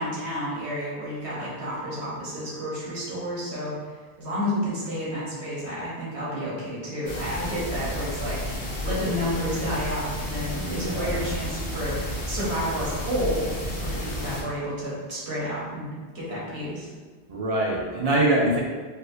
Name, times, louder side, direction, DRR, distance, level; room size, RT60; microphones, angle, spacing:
voice 1, 0.0-3.9 4.2-16.9, equal, 85° right, -7 dB, 1.3 m, -30 dB
sound 1, 7.1-14.4, left 1 dB, 55° left, 0.9 m, -32 dB
voice 2, 10.5-11.3 17.3-18.6, right 1 dB, 55° right, -3 dB, 0.4 m, -24 dB
4.4 x 2.1 x 2.6 m, 1.4 s
omnidirectional pair, 1.1 m